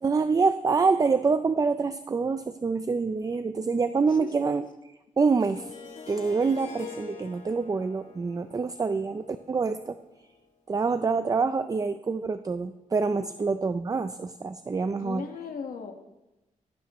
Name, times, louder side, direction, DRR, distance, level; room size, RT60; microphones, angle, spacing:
voice 1, 0.0-4.6 5.2-5.7 6.1-10.0 10.7-15.2, right 4 dB, 25° right, 10 dB, 0.5 m, -26 dB
Harp, 5.4-10.4, left 5 dB, 60° left, 2.3 m, -45 dB
voice 2, 15.0-15.9, left 6 dB, 85° left, 4 dB, 1.6 m, -37 dB
16.5 x 15.0 x 3.1 m, 1.0 s
wide cardioid pair, 125°, 14 cm